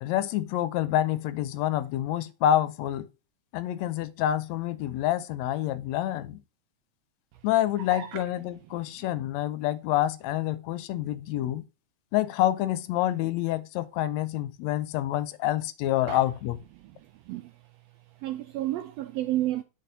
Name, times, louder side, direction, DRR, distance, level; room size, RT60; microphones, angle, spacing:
voice 1, 0.0-3.1 3.5-6.4 7.4-11.6 12.1-16.6, left 12 dB, 75° left, 1.8 m, -27 dB
voice 2, 7.9-8.2 16.1-16.2 17.3-17.5 18.2-19.6, right 14 dB, 80° right, 1.5 m, -31 dB
7.0 x 6.1 x 2.7 m
omnidirectional pair, 3.4 m